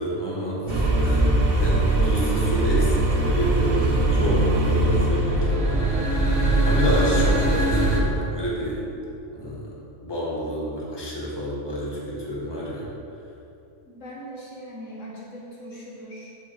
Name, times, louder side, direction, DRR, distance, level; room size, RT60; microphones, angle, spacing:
voice 1, 0.0-3.9 4.1-6.2 6.6-8.8 9.3-9.7 10.0-12.9, equal, 15° left, -5 dB, 1.8 m, -29 dB
sound 1, 0.7-8.0, right 1 dB, 55° right, 1.8 m, -21 dB
voice 2, 3.0-4.0 13.9-16.3, equal, 60° left, -4 dB, 1.8 m, -40 dB
7.4 x 6.3 x 7.4 m, 2.8 s
omnidirectional pair, 1.5 m